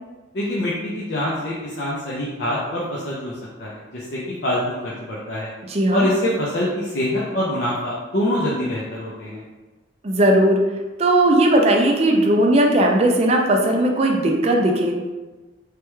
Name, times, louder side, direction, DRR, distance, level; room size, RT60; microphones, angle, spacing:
voice 1, 0.3-3.3 3.6-5.5 5.9-9.4, left 1 dB, 65° left, -6 dB, 0.5 m, -25 dB
voice 2, 5.7-6.1 10.0-10.6 11.0-14.9, right 1 dB, 35° right, 1 dB, 0.4 m, -17 dB
3.2 x 2.2 x 3.0 m, 1.2 s
head